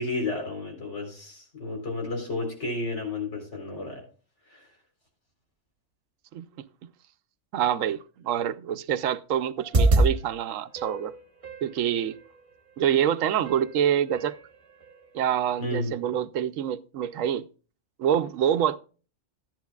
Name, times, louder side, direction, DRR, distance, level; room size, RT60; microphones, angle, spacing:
voice 1, 0.0-4.0 4.5-4.7 15.6-15.9, left 2 dB, 65° left, 4.2 m, -32 dB
voice 2, 6.3-6.7 7.5-11.1 11.6-12.2 12.8-14.4 15.1-17.5 18.0-18.8, right 9 dB, 85° right, 1.0 m, -26 dB
sound 1, 9.6-10.1 10.8-11.7 12.8-12.9 13.4-13.7 14.1-14.4 14.8-14.9, right 2 dB, 30° right, 1.0 m, -24 dB
13.5 x 10.5 x 2.3 m
omnidirectional pair, 1.3 m